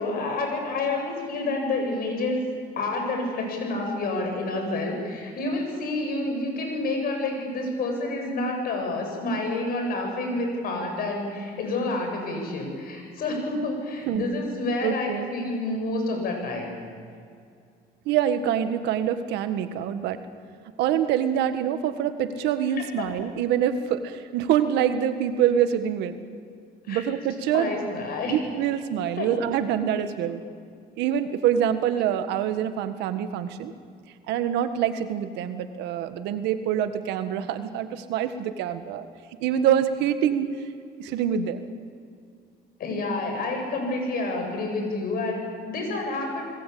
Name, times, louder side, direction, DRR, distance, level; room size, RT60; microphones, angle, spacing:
voice 1, 0.0-2.5 2.7-16.8 22.6-23.1 26.9-27.1 27.5-28.4 29.2-29.3 42.8-46.4, left 2 dB, 60° left, 3 dB, 7.9 m, -29 dB
voice 2, 14.8-15.3 18.0-20.2 20.8-26.2 26.9-27.7 28.3-30.4 31.0-33.7 34.3-39.0 39.4-40.6 41.0-41.7, right 9 dB, 90° right, 9 dB, 1.7 m, -25 dB
29.0 x 20.0 x 8.6 m, 2.3 s
cardioid pair, 110°, 17 cm